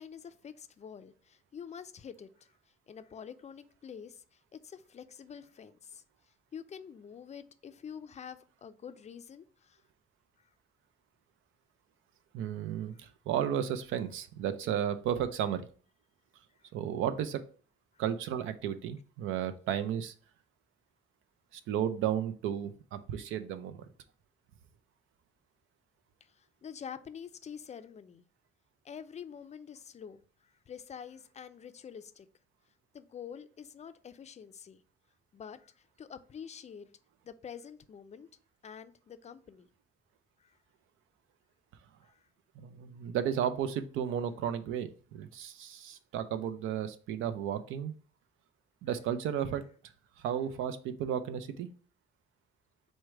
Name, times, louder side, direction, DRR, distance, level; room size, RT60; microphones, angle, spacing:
voice 1, 0.0-2.5 2.9-6.0 6.5-9.8 16.6-16.7 26.2-28.2 28.8-32.3 32.9-34.8 35.3-36.9 37.2-38.3 38.6-39.7 40.4-40.6 42.0-42.3, left 7 dB, 35° left, 0.4 m, -47 dB
voice 2, 12.3-15.7 16.7-17.4 18.0-20.1 21.5-23.8 42.6-47.9 48.8-49.6 50.2-51.7, right 9 dB, 90° right, 0.5 m, -33 dB
4.6 x 2.1 x 4.5 m
cardioid pair, 90°, 20 cm